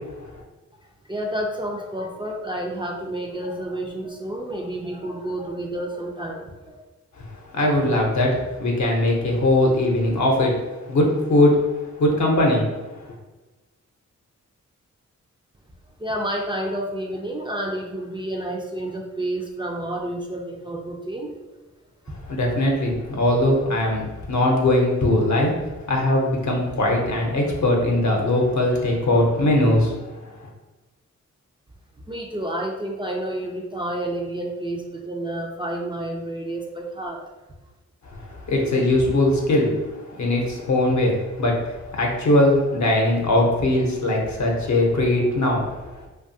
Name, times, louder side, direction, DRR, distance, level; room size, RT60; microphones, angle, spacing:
voice 1, 1.1-6.8 16.0-21.3 32.0-37.3, right 1 dB, 15° right, -1 dB, 0.3 m, -30 dB
voice 2, 7.5-10.5 10.9-11.6 12.0-12.8 22.2-25.5 25.9-30.5 38.1-39.7 40.2-45.6, left 1 dB, 65° left, 0 dB, 0.7 m, -20 dB
2.7 x 2.3 x 2.6 m, 1.2 s
cardioid pair, 60°, 31 cm